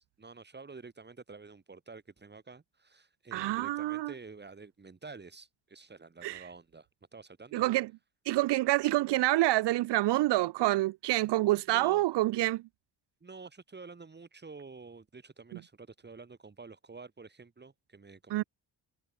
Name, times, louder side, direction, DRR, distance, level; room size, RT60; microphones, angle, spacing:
voice 1, 0.0-7.7 11.7-12.0 13.2-18.4, right 4 dB, 25° right, 5.3 m, -49 dB
voice 2, 3.3-4.1 6.2-6.4 7.5-7.9 8.3-12.6 18.3-18.4, right 17 dB, 75° right, 0.6 m, -27 dB
cardioid pair, 130°, 42 cm